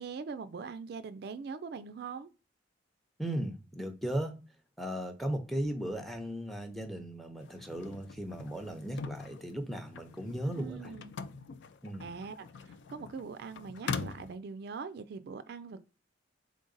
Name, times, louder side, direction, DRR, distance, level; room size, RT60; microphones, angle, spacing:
voice 1, 0.0-2.3 10.4-11.1 12.0-15.8, right 5 dB, 60° right, 0.3 m, -42 dB
voice 2, 3.2-4.4 4.8-10.9 11.8-12.1, right 1 dB, ahead, 0.6 m, -36 dB
sound 1, 7.4-14.3, left 5 dB, 70° left, 0.4 m, -43 dB
3.8 x 3.6 x 3.8 m
head